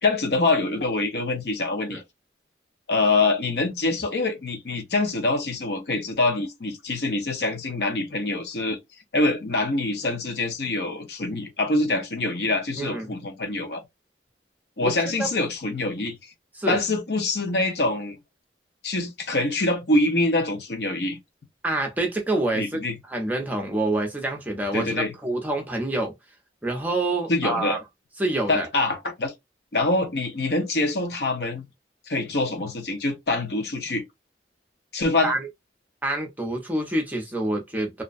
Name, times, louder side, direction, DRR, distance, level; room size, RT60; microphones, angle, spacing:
voice 1, 0.0-2.0 2.9-8.8 9.1-13.8 14.8-16.3 16.7-18.2 18.8-21.2 22.5-23.0 24.7-25.1 27.3-27.8 28.5-29.3 29.7-31.7 32.1-34.0 34.9-35.3, left 2 dB, 65° left, 0.7 m, -25 dB
voice 2, 12.7-13.1 14.8-14.9 15.2-15.3 16.5-16.8 21.6-26.1 26.6-27.8 28.2-28.7 35.2-35.5 36.0-38.0, right 2 dB, 10° right, 0.6 m, -27 dB
2.5 x 2.1 x 2.4 m
head